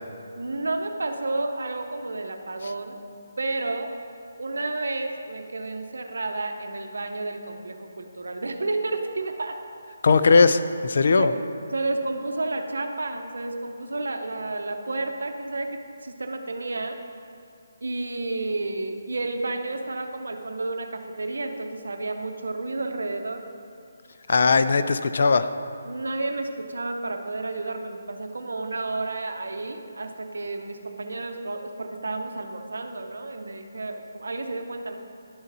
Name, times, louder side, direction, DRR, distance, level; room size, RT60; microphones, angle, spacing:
voice 1, 0.4-3.0 3.4-3.9 4.4-9.6 11.2-11.4 11.7-17.0 17.8-23.5 25.9-35.0, right 2 dB, 80° right, 6 dB, 0.7 m, -31 dB
voice 2, 10.0-11.3 24.3-25.5, left 4 dB, 60° left, 11 dB, 0.4 m, -19 dB
11.0 x 3.9 x 4.0 m, 2.5 s
hypercardioid pair, 160°, 0 cm